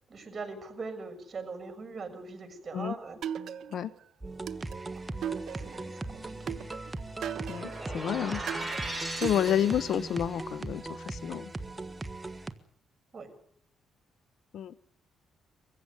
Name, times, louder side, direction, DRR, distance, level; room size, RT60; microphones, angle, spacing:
voice 1, 0.1-3.2 4.9-5.0 5.6-6.6 8.8-8.9 13.1-13.3, right 4 dB, 35° right, 6 dB, 6.7 m, -41 dB
sound 1, 3.2-4.0 4.5-5.9 6.5-7.9 8.5-9.9, right 9 dB, 70° right, 1.2 m, -38 dB
sound 2, 4.2-12.5, right 2 dB, 15° right, 1.8 m, -39 dB
voice 2, 7.5-8.4 8.9-11.5 14.5-14.7, left 10 dB, 65° left, 17 dB, 1.0 m, -30 dB
sound 3, 7.5-10.3, right 2 dB, ahead, 7.9 m, -38 dB
24.5 x 15.5 x 9.7 m, 0.69 s
cardioid pair, 90°, 0 cm